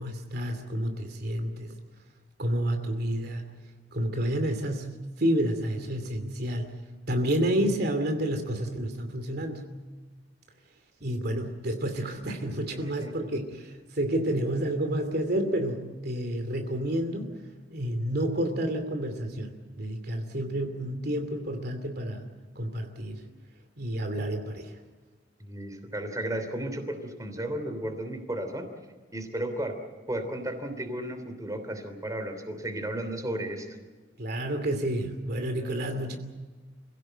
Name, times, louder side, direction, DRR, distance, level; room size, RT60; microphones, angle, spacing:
voice 1, 0.0-1.8 2.4-3.4 3.9-6.7 7.1-9.7 11.0-17.4 17.7-22.3 22.5-23.3 23.8-24.8 34.2-36.2, right 1 dB, 60° right, 6 dB, 2.7 m, -30 dB
voice 2, 25.4-28.7 29.1-29.7 30.1-33.7 35.5-35.8, right 1 dB, 20° right, 6 dB, 3.2 m, -34 dB
26.5 x 17.0 x 7.9 m, 1.3 s
head